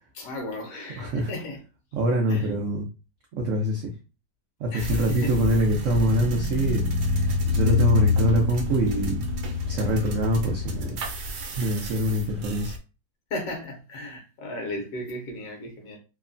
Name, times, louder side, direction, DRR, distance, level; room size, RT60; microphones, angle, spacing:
voice 1, 0.1-1.6 2.3-2.5 4.7-5.4 13.3-16.0, left 1 dB, 60° left, 1.0 m, -35 dB
voice 2, 1.0-1.3 1.9-2.8 3.3-3.9 4.6-6.9 7.2-9.3 9.7-11.0 11.5-12.8, right 1 dB, 90° right, 0.6 m, -25 dB
sound 1, 4.8-12.7, left 4 dB, 70° right, 1.0 m, -27 dB
3.0 x 2.1 x 2.4 m
omnidirectional pair, 1.9 m